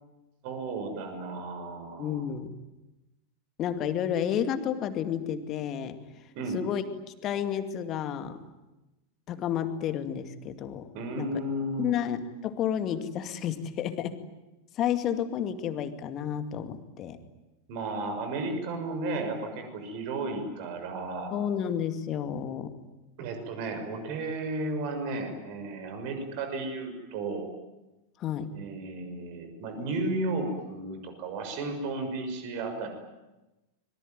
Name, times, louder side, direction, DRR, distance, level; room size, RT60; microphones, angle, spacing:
voice 1, 0.4-2.2 6.3-6.6 10.9-11.9 17.7-21.4 23.2-27.5 28.5-32.9, right 2 dB, 45° right, 6 dB, 6.4 m, -33 dB
voice 2, 2.0-2.5 3.6-6.1 6.5-6.8 7.2-8.4 9.3-10.9 11.2-11.3 11.8-14.2 14.7-17.2 21.3-22.8 28.2-28.6, left 9 dB, 35° left, 9 dB, 2.3 m, -31 dB
25.5 x 23.0 x 9.5 m, 1.0 s
figure-of-eight pair, 90°, 0 cm